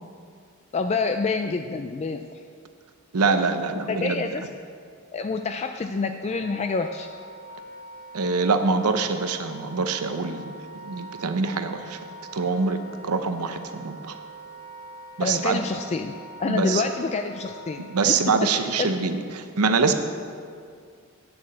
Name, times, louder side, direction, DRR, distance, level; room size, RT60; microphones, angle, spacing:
voice 1, 0.7-2.4 3.9-4.5 5.1-7.1 15.2-18.9, left 4 dB, 30° left, 7 dB, 0.3 m, -28 dB
voice 2, 3.1-4.2 8.1-10.5 10.8-12.0 12.3-14.2 15.2-15.6 16.5-16.8 17.9-19.9, right 4 dB, 90° right, 8 dB, 0.8 m, -24 dB
Wind instrument woodwind instrument, 6.2-18.2, right 1 dB, 85° left, 1.7 m, -43 dB
8.9 x 6.9 x 7.7 m, 2.2 s
head